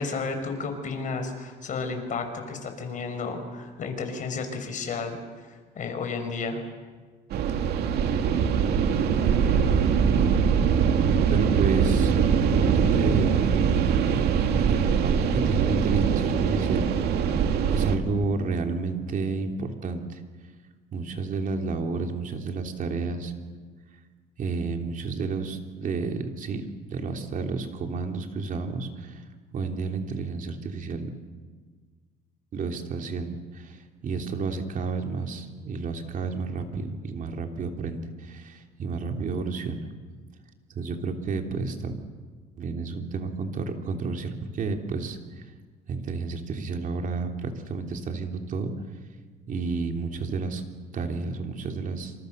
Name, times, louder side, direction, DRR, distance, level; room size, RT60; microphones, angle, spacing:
voice 1, 0.0-6.6, left 4 dB, 50° left, 6 dB, 5.5 m, -32 dB
sound 1, 7.3-18.0, right 7 dB, 70° right, 2.5 m, -22 dB
voice 2, 11.3-12.1 12.6-13.8 14.6-16.9 17.2-17.3 17.7-20.2 20.9-23.3 24.4-29.2 29.5-31.1 32.5-39.9 40.8-41.9 42.6-45.4 45.9-48.7 49.5-50.6 50.9-52.1, right 4 dB, 50° right, 4 dB, 3.2 m, -31 dB
27.5 x 27.0 x 6.7 m, 1.5 s
cardioid pair, 110°, 17 cm